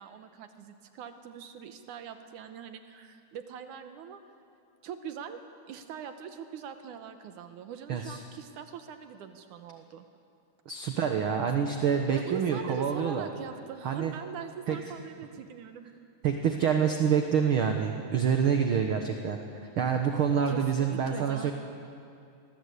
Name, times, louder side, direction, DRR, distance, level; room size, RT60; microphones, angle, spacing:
voice 1, 0.0-4.2 4.8-5.4 5.7-10.1 12.1-15.9 20.5-21.5, right 7 dB, 75° right, 8 dB, 2.5 m, -42 dB
voice 2, 10.6-13.3 13.8-14.1 14.7-14.8 16.2-19.4 19.8-21.5, right 7 dB, 55° right, 4 dB, 1.7 m, -27 dB
25.5 x 20.5 x 8.5 m, 2.5 s
omnidirectional pair, 3.6 m